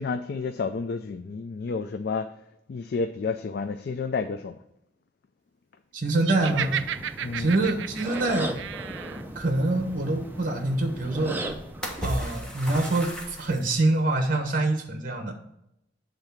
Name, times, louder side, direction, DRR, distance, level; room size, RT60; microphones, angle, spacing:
voice 1, 0.0-2.3 2.7-4.6 7.2-7.5, left 4 dB, 55° left, 9 dB, 0.4 m, -30 dB
voice 2, 5.9-6.8 7.4-8.6 9.3-11.5 12.0-15.3, right 2 dB, 45° right, 5 dB, 1.2 m, -25 dB
Laughter, 6.2-9.2, right 9 dB, 85° right, 0.4 m, -33 dB
sound 1, 6.4-12.0, right 1 dB, 10° right, 0.6 m, -37 dB
sound 2, 7.3-14.0, equal, 5° left, 1.2 m, -39 dB
8.1 x 3.9 x 5.7 m, 0.81 s
head